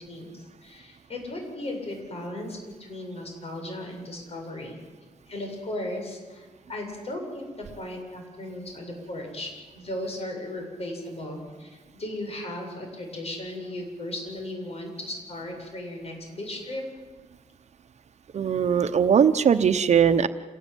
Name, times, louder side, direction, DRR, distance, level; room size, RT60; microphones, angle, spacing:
voice 1, 0.0-4.8 5.3-7.4 7.8-16.8, left 1 dB, 50° left, 2 dB, 7.9 m, -36 dB
voice 2, 18.3-20.3, right 7 dB, 60° right, 10 dB, 1.0 m, -20 dB
27.5 x 18.5 x 9.2 m, 1.4 s
cardioid pair, 110°, 13 cm